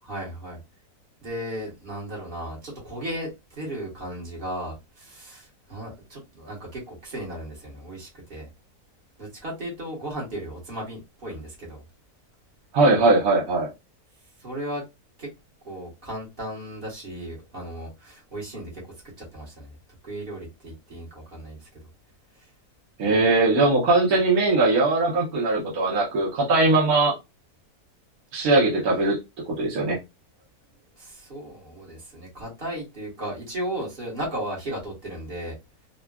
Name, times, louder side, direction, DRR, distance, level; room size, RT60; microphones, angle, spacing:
voice 1, 0.0-0.6 1.2-8.5 9.2-11.8 14.4-14.8 15.2-15.3 15.6-18.8 19.2-19.8 20.0-21.7 22.3-22.5 31.0-35.6, right 1 dB, 40° right, 1.4 m, -35 dB
voice 2, 12.7-13.7 23.0-27.1 28.3-29.2 29.5-30.0, right 2 dB, 70° right, 1.4 m, -20 dB
3.8 x 2.2 x 2.2 m
omnidirectional pair, 1.6 m